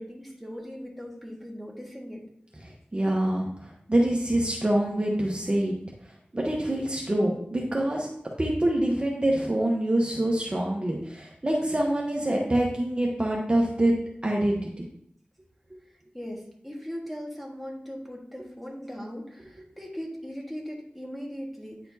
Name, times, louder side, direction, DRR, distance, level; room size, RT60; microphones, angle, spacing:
voice 1, 0.0-2.2 15.9-21.9, equal, ahead, -1 dB, 1.6 m, -39 dB
voice 2, 2.6-5.7 6.3-8.1 8.4-13.9 14.2-14.7, right 1 dB, 30° right, -2 dB, 1.0 m, -25 dB
9.1 x 4.3 x 2.8 m, 0.69 s
wide cardioid pair, 60°, 3 cm